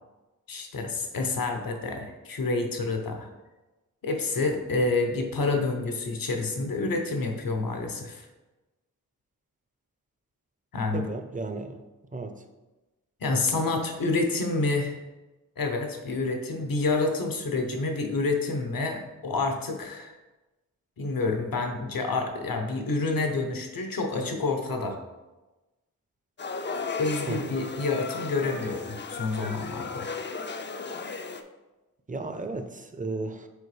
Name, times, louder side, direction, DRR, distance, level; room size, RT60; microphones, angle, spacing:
voice 1, 0.5-3.3 4.0-8.3 10.7-11.0 13.2-15.0 15.6-20.1 21.0-25.0 27.0-30.1, left 3 dB, 75° left, 4 dB, 0.9 m, -28 dB
voice 2, 10.9-11.8 12.1-12.3 27.3-27.5 32.1-33.5, right 3 dB, 25° right, 7 dB, 0.6 m, -34 dB
sound 1, 26.4-31.4, left 4 dB, 35° left, 0.4 m, -35 dB
6.7 x 4.5 x 3.3 m, 1.1 s
wide cardioid pair, 75°, 35 cm